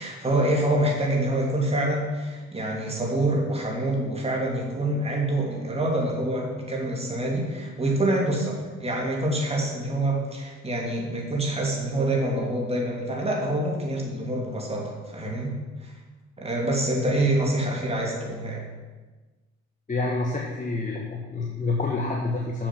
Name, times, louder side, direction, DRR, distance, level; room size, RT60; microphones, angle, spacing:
voice 1, 0.0-15.5 15.8-15.9 16.4-18.6, right 1 dB, 20° right, -2 dB, 2.9 m, -26 dB
voice 2, 19.9-22.7, left 3 dB, 25° left, -1 dB, 1.6 m, -28 dB
7.5 x 7.1 x 7.6 m, 1.3 s
cardioid pair, 90°, 30 cm